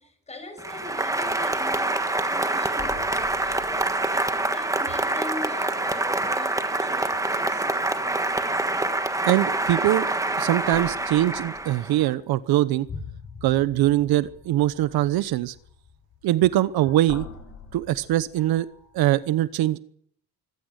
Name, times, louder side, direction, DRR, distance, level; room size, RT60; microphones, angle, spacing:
voice 1, 0.0-7.7, left 2 dB, 15° left, 7 dB, 6.0 m, -41 dB
Applause, 0.6-12.1, right 2 dB, 10° right, 1.4 m, -26 dB
sound 1, 1.9-2.1 2.3-4.7 5.2-5.7 6.6-6.9 7.2-8.1 9.6-10.1 10.6-19.3, left 5 dB, 35° left, 7.1 m, -45 dB
voice 2, 9.2-10.1 10.4-12.9 13.4-15.5 16.2-17.3 17.7-18.7 18.9-19.8, right 14 dB, 75° right, 16 dB, 1.0 m, -22 dB
24.5 x 15.5 x 8.2 m, 0.62 s
cardioid pair, 160°, 38 cm